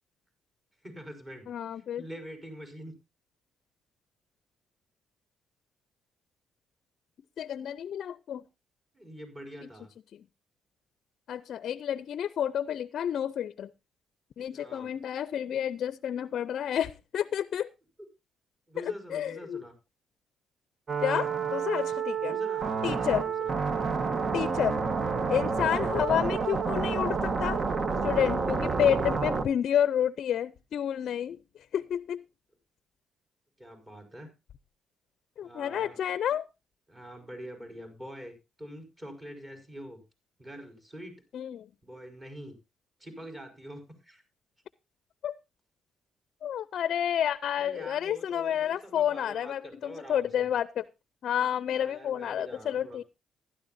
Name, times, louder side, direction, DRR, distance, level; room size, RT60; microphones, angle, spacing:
voice 1, 0.8-2.9 8.9-9.9 14.5-14.9 18.7-19.7 22.2-23.6 33.6-34.3 35.4-36.0 36.9-40.0 40.4-41.2 41.8-42.6 43.0-44.2 47.6-50.5 51.7-53.1, equal, 20° right, 5 dB, 5.0 m, -45 dB
voice 2, 1.5-2.0 7.4-8.4 11.3-13.7 14.4-17.7 19.1-19.6 21.0-22.4 22.8-23.2 24.3-24.8 25.3-27.6 28.0-31.4 31.7-32.2 35.4-36.5 41.3-41.7 45.2-45.3 46.4-50.8 51.2-53.0, left 9 dB, 65° left, 17 dB, 0.5 m, -30 dB
sound 1, 20.9-29.4, right 5 dB, 40° right, 1.1 m, -29 dB
15.5 x 12.5 x 2.6 m, 0.26 s
cardioid pair, 90°, 0 cm